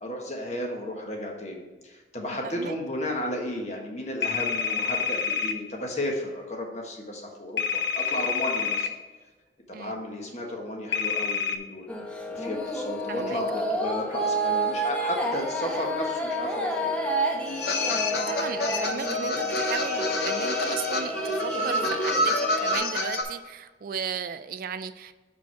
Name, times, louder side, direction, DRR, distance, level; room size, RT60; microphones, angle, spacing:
voice 1, 0.0-8.9 9.7-11.8 12.3-16.9, left 1 dB, 40° left, 0 dB, 1.4 m, -33 dB
voice 2, 2.4-2.7 9.7-9.9 13.1-13.4 18.3-25.1, right 7 dB, 50° right, 12 dB, 0.3 m, -35 dB
sound 1, 4.2-5.6 7.6-8.9 10.9-11.6, left 6 dB, 80° left, 0.6 m, -27 dB
sound 2, 11.9-22.8, right 1 dB, 5° left, 0.9 m, -30 dB
sound 3, 17.5-23.2, left 1 dB, 60° left, 1.0 m, -28 dB
6.4 x 5.2 x 4.5 m, 1.3 s
head